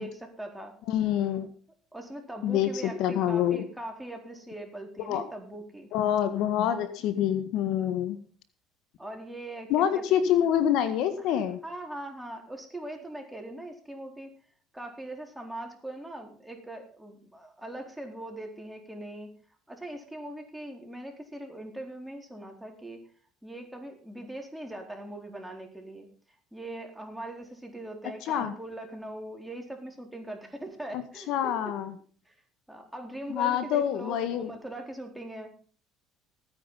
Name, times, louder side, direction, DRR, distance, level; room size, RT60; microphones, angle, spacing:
voice 1, 0.0-0.8 1.9-5.9 9.0-10.2 11.6-14.4 14.7-19.3 19.7-23.0 23.4-26.1 26.5-31.8 32.3-32.4 32.7-35.6, right 1 dB, 5° right, 3 dB, 4.2 m, -41 dB
voice 2, 0.9-1.5 2.4-3.6 5.0-5.2 5.9-8.2 9.7-11.6 28.3-28.5 30.9-31.0 31.3-31.9 33.3-34.5, left 10 dB, 70° left, 10 dB, 1.7 m, -26 dB
15.5 x 9.7 x 5.6 m, 0.43 s
supercardioid pair, 85°, 0 cm